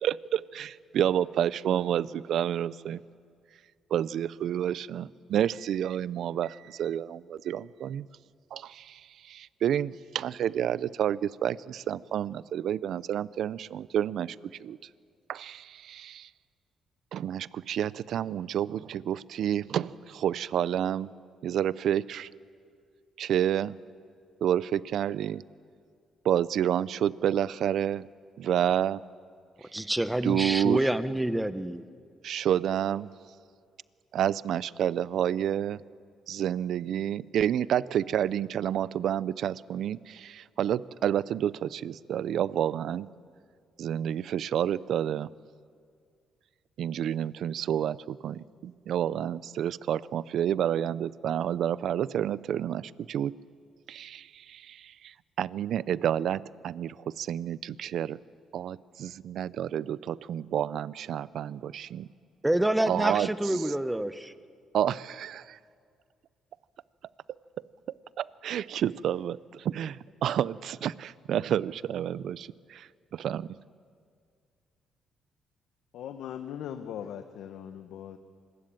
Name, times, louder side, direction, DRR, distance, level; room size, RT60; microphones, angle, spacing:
voice 1, 0.0-3.0 3.9-8.1 8.5-14.4 14.6-14.8 15.3-16.3 17.1-21.1 21.4-22.3 23.2-23.8 24.4-25.4 26.2-28.1 28.4-29.0 30.2-30.8 32.2-33.1 34.1-35.8 36.3-43.1 43.8-45.3 46.8-53.4 53.9-58.2 58.5-62.1 62.9-63.7 64.7-65.6 68.2-73.6, right 10 dB, 70° right, 19 dB, 0.5 m, -29 dB
voice 2, 29.7-31.8 62.4-64.3, right 1 dB, 10° right, 12 dB, 1.2 m, -27 dB
voice 3, 75.9-78.2, left 9 dB, 80° left, 8 dB, 1.2 m, -39 dB
26.0 x 21.0 x 9.0 m, 2.2 s
cardioid pair, 90°, 0 cm